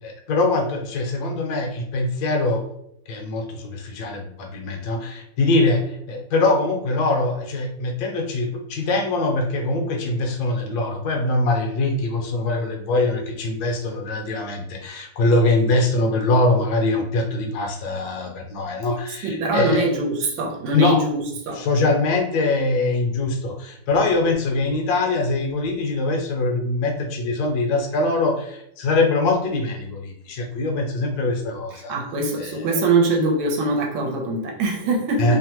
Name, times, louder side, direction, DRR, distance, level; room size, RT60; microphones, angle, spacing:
voice 1, 0.0-2.6 3.1-19.9 20.7-21.0 21.5-31.9 32.4-32.5 35.2-35.4, left 2 dB, 70° left, 3 dB, 1.0 m, -23 dB
voice 2, 19.2-21.9 31.7-35.4, right 2 dB, 80° right, 0 dB, 1.4 m, -23 dB
3.2 x 2.1 x 2.9 m, 0.75 s
omnidirectional pair, 2.1 m